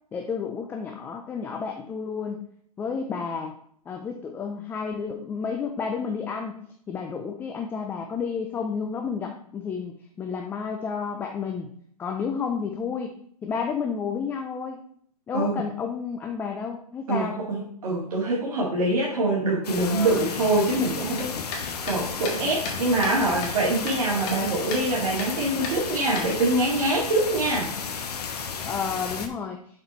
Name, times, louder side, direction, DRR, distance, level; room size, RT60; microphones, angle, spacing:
voice 1, 0.1-2.4 2.8-3.5 3.9-11.7 12.0-13.1 13.4-14.8 15.3-17.4 19.8-20.3 28.6-29.6, left 6 dB, 10° left, 3 dB, 0.4 m, -31 dB
voice 2, 17.1-27.7, right 2 dB, 65° right, -5 dB, 2.3 m, -25 dB
sound 1, 19.6-29.3, left 6 dB, 80° left, 1.1 m, -33 dB
sound 2, 21.2-23.2 23.4-24.4 24.7-24.9 25.2-25.3 25.6-26.7, left 3 dB, 35° left, 1.8 m, -35 dB
6.9 x 4.3 x 4.3 m, 0.63 s
hypercardioid pair, 140°, 20 cm